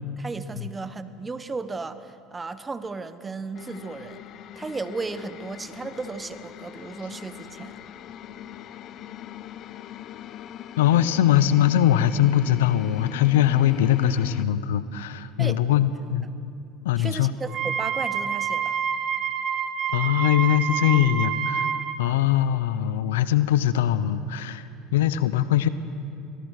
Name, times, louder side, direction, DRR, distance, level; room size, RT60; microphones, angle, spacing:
voice 1, 0.2-4.2 4.5-7.8 15.4-15.6 17.0-18.8, right 4 dB, 20° right, 12 dB, 1.2 m, -35 dB
sound 1, 3.5-14.5, left 11 dB, 55° left, 0.8 m, -41 dB
voice 2, 10.8-16.3 16.8-17.3 19.9-21.7 22.0-25.7, left 11 dB, 85° left, 15 dB, 0.8 m, -21 dB
Wind instrument woodwind instrument, 17.5-22.0, right 7 dB, 50° right, 1.6 m, -27 dB
25.0 x 18.0 x 6.6 m, 2.5 s
hypercardioid pair, 85°, 0 cm